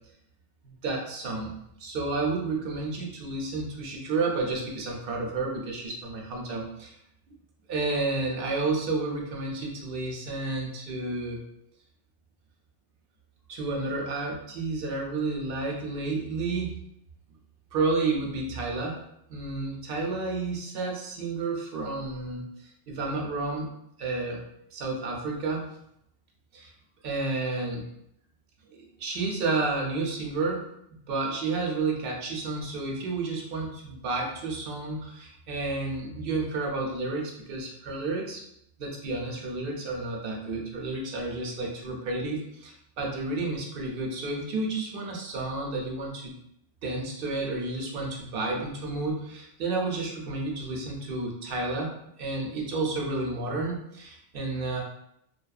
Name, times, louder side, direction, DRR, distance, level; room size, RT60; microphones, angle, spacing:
voice 1, 0.6-7.0 7.3-7.4 7.7-11.4 13.5-16.8 17.7-19.0 19.3-24.4 24.7-25.7 26.5-26.7 27.0-27.9 28.7-30.6 30.9-38.4 38.8-46.4 46.8-54.8, right 3 dB, 60° right, -1 dB, 0.7 m, -31 dB
2.6 x 2.2 x 2.3 m, 0.76 s
omnidirectional pair, 1.2 m